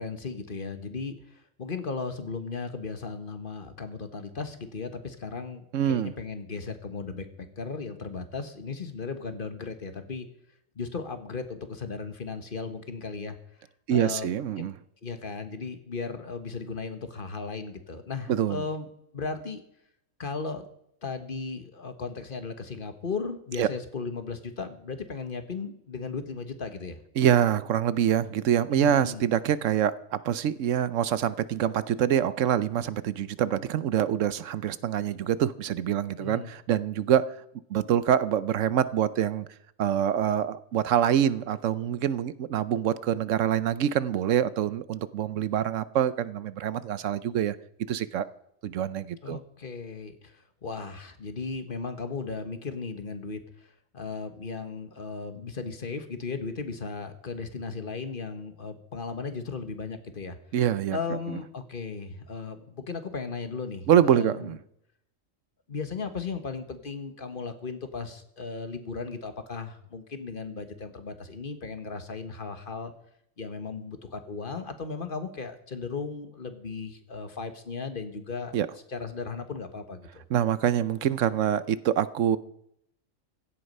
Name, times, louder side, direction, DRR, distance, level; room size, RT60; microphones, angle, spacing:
voice 1, 0.0-10.3 10.7-13.4 13.9-14.7 15.0-18.9 19.1-19.6 20.2-20.7 21.0-27.0 28.7-29.2 36.2-36.5 49.2-60.4 60.9-64.6 65.7-72.9 73.4-78.6 78.9-80.2, left 4 dB, 40° left, 9 dB, 1.4 m, -36 dB
voice 2, 5.7-6.1 13.9-14.8 18.3-18.7 23.6-23.7 27.2-37.2 37.7-39.5 39.8-47.6 47.9-48.3 48.6-49.4 60.5-61.0 61.3-61.4 63.9-64.6 78.5-78.7 80.3-82.4, right 10 dB, 70° right, 16 dB, 1.0 m, -25 dB
16.0 x 11.0 x 5.4 m, 0.75 s
omnidirectional pair, 1.4 m